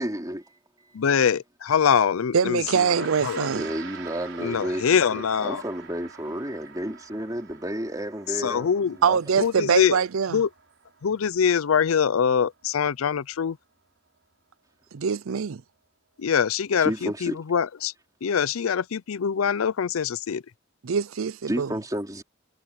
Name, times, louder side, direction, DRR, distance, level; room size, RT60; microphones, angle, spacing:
voice 1, 0.0-1.3 3.5-9.4 16.8-17.4 21.5-22.2, equal, 15° right, 3.2 m, -32 dB
voice 2, 0.9-3.5 4.4-5.6 8.4-9.0 9.4-10.0 10.3-10.5 11.0-13.6 16.2-17.9 18.2-20.4, left 7 dB, 90° left, 0.5 m, -24 dB
voice 3, 2.3-3.7 9.0-10.4 14.9-15.6 20.8-21.7, right 6 dB, 85° right, 0.5 m, -24 dB
Gong, 2.6-12.1, right 6 dB, 65° right, 4.9 m, -45 dB
head